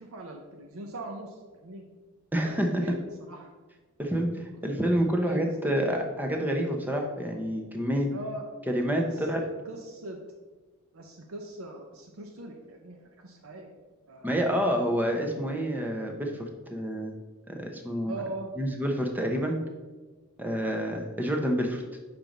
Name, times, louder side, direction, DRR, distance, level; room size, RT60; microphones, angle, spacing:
voice 1, 0.0-1.9 2.4-2.6 2.8-3.5 5.1-5.8 8.1-8.5 9.0-10.2 10.9-13.7 14.1-14.5 18.1-18.5, right 2 dB, 75° right, 2 dB, 0.7 m, -41 dB
voice 2, 2.3-2.8 4.0-8.1 8.7-9.4 14.2-17.1 17.5-18.1 18.6-19.6 20.4-21.8, equal, 10° right, 2 dB, 0.8 m, -28 dB
5.1 x 4.5 x 5.2 m, 1.3 s
head